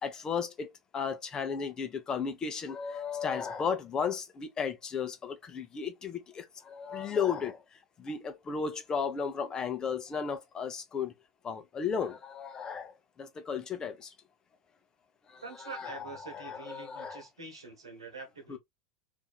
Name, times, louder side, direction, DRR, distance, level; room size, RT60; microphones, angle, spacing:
voice 1, 0.0-7.6 8.0-11.1 11.4-12.9 13.2-14.1 15.3-17.2 18.5-18.6, left 6 dB, 25° left, 0.6 m, -34 dB
voice 2, 15.4-18.6, right 4 dB, 85° right, 1.2 m, -45 dB
2.6 x 2.6 x 2.3 m
hypercardioid pair, 90°, 3 cm